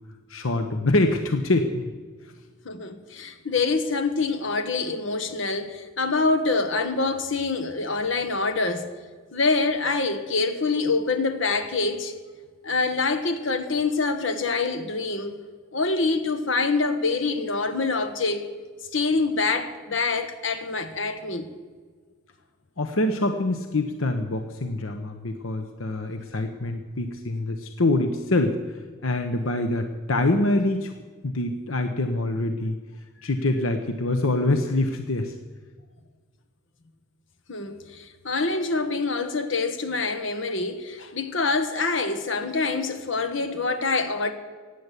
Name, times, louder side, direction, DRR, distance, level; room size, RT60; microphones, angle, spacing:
voice 1, 0.3-1.9 22.8-30.9 31.2-32.8 33.2-35.3, left 2 dB, 90° left, 1.0 m, -25 dB
voice 2, 2.6-8.9 9.3-12.1 12.6-15.4 15.7-18.4 18.9-21.5 37.5-44.3, left 3 dB, 70° left, 1.5 m, -25 dB
16.0 x 9.5 x 8.3 m
head